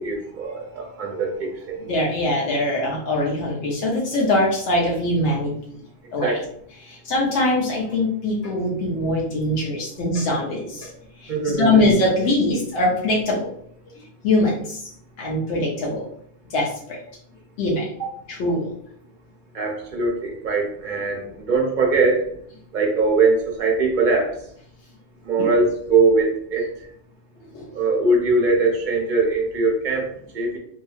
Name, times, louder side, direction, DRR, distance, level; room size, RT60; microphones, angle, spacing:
voice 1, 0.0-1.9 6.2-6.4 11.3-11.8 18.0-18.1 19.5-22.2 22.7-24.4 25.2-26.9 27.7-30.6, right 3 dB, 50° right, 0 dB, 0.7 m, -21 dB
voice 2, 1.8-5.5 6.1-6.4 6.7-10.9 11.2-13.5 14.2-14.9 15.2-16.1 16.5-17.0 17.6-17.9 18.3-18.7 25.4-25.5 27.5-27.7, left 1 dB, 80° left, -3 dB, 0.9 m, -22 dB
2.8 x 2.6 x 2.4 m, 0.66 s
omnidirectional pair, 1.2 m